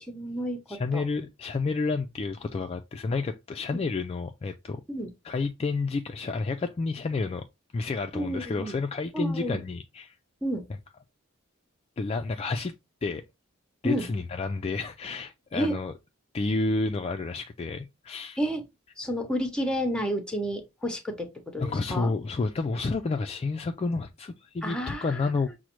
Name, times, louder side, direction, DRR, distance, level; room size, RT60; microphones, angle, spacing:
voice 1, 0.0-1.0 3.7-3.8 4.9-5.1 8.1-8.7 9.1-9.6 10.4-10.7 13.8-14.1 15.5-15.8 18.4-18.6 19.0-21.3 21.5-22.1 24.6-25.3, equal, 5° left, 0.7 m, -30 dB
voice 2, 0.7-4.8 5.2-7.4 7.7-10.2 12.0-12.7 13.0-13.2 13.8-15.9 16.3-18.4 21.6-25.5, left 3 dB, 30° left, 0.3 m, -30 dB
6.1 x 2.1 x 3.0 m
head